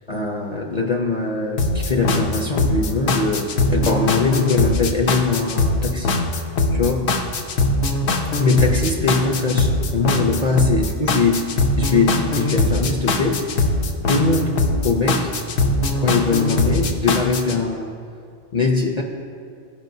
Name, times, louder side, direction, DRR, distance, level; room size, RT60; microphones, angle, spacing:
voice 1, 0.1-6.1 6.7-7.1 8.4-13.5 14.0-15.3 16.0-17.9 18.5-19.0, left 3 dB, 45° left, 0 dB, 0.6 m, -21 dB
sound 1, 1.6-17.6, left 2 dB, 70° left, 0.9 m, -21 dB
14.5 x 5.1 x 2.7 m, 2.5 s
omnidirectional pair, 1.2 m